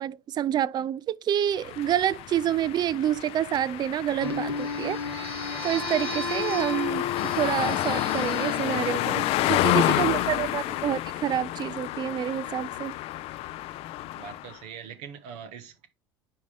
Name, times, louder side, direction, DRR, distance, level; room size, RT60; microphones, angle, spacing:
voice 1, 0.0-5.2 5.6-7.1 7.4-12.9, right 10 dB, 35° right, 0.4 m, -28 dB
sound 1, 1.6-14.6, left 15 dB, 50° left, 0.5 m, -30 dB
sound 2, 4.2-10.2, left 3 dB, 85° right, 1.5 m, -34 dB
voice 2, 9.8-10.9 14.1-15.9, right 8 dB, 55° right, 1.1 m, -43 dB
10.0 x 3.7 x 3.2 m
figure-of-eight pair, 70°, 13 cm